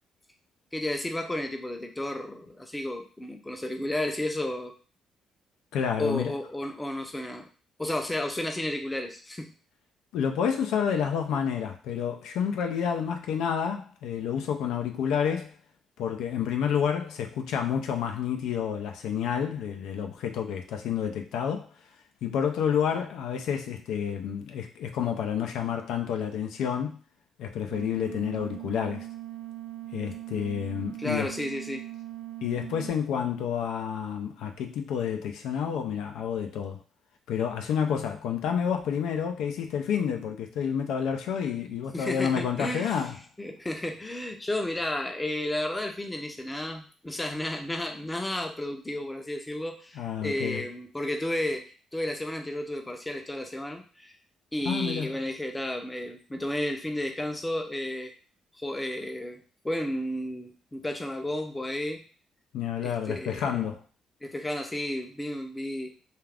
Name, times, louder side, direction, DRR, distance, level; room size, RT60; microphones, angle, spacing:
voice 1, 0.7-4.7 6.0-7.5 7.8-9.5 31.0-31.8 41.9-43.0 43.4-51.6 51.9-54.1 54.5-58.1 58.6-62.0 62.8-63.6 64.2-65.9, left 1 dB, 15° left, 4 dB, 0.5 m, -32 dB
voice 2, 5.7-6.3 10.1-15.5 16.0-21.7 22.2-27.0 27.4-29.1 29.9-31.3 32.4-36.8 37.3-43.1 50.0-50.6 54.7-55.2 62.5-63.8, left 8 dB, 85° left, 4 dB, 0.4 m, -29 dB
sound 1, 27.7-32.9, right 14 dB, 55° right, 0.6 m, -40 dB
2.4 x 2.4 x 3.3 m, 0.38 s
cardioid pair, 90°, 0 cm